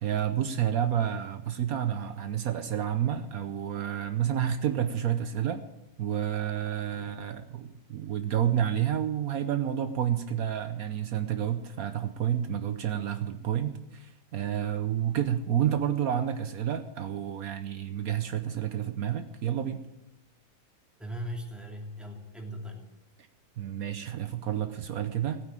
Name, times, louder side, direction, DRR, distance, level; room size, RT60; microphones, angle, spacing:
voice 1, 0.0-5.6 6.0-19.8 23.6-25.4, right 10 dB, 70° right, 9 dB, 1.3 m, -30 dB
voice 2, 21.0-22.9, equal, ahead, 0 dB, 2.8 m, -39 dB
16.0 x 9.1 x 8.6 m, 0.91 s
omnidirectional pair, 1.6 m